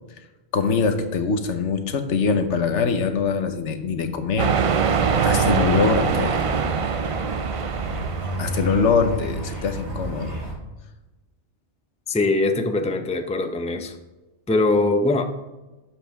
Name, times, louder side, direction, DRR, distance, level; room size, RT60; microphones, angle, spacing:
voice 1, 0.5-4.6 5.0-6.5 8.4-10.4, left 5 dB, 85° left, 8 dB, 1.3 m, -23 dB
sound 1, 4.4-8.9, right 6 dB, 55° right, 0.3 m, -23 dB
sound 2, 4.7-10.5, right 1 dB, 75° right, 3.5 m, -32 dB
voice 2, 12.1-14.0 14.5-15.2, left 2 dB, 10° left, 6 dB, 0.5 m, -22 dB
11.5 x 8.0 x 3.6 m, 1.1 s
omnidirectional pair, 1.2 m